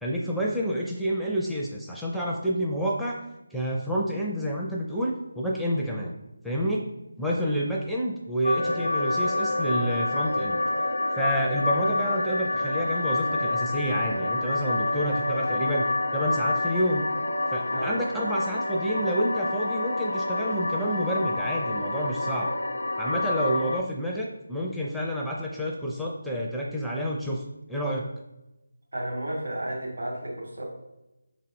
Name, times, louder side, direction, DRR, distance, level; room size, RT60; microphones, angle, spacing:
voice 1, 0.0-3.2 3.5-6.1 6.4-6.9 7.2-10.6 11.2-17.1 17.5-22.5 23.0-27.4 27.7-28.1, equal, ahead, -5 dB, 0.5 m, -29 dB
sound 1, 8.4-23.8, left 2 dB, 70° left, 0.4 m, -28 dB
voice 2, 17.7-18.0 28.9-30.6, right 1 dB, 70° right, -2 dB, 2.3 m, -32 dB
6.1 x 4.0 x 4.3 m, 0.96 s
figure-of-eight pair, 155°, 0 cm